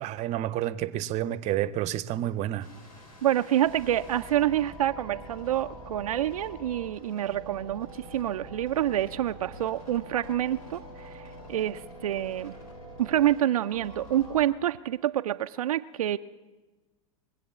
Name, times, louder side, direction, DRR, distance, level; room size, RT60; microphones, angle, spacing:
voice 1, 0.0-2.7, right 13 dB, 40° right, 0.7 m, -29 dB
sound 1, 2.6-14.5, equal, 85° left, 3.5 m, -45 dB
voice 2, 3.2-12.6 13.0-16.2, right 12 dB, 80° right, 0.4 m, -27 dB
22.0 x 7.9 x 7.3 m
hypercardioid pair, 100°, 18 cm